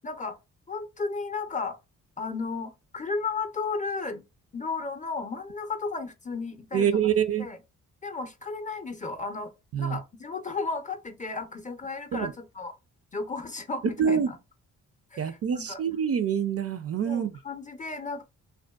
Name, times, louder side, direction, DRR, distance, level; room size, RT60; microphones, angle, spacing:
voice 1, 0.0-0.4 0.7-1.8 2.2-4.2 4.5-6.9 7.4-7.6 8.0-9.5 9.8-12.7 13.1-14.4 15.1-15.8 17.0-18.2, left 4 dB, 20° left, 0.6 m, -34 dB
voice 2, 6.7-7.5 9.7-10.0 12.1-12.3 14.0-14.3 15.2-17.3, right 8 dB, 45° right, 0.4 m, -26 dB
2.5 x 2.3 x 2.2 m
supercardioid pair, 55°, 34 cm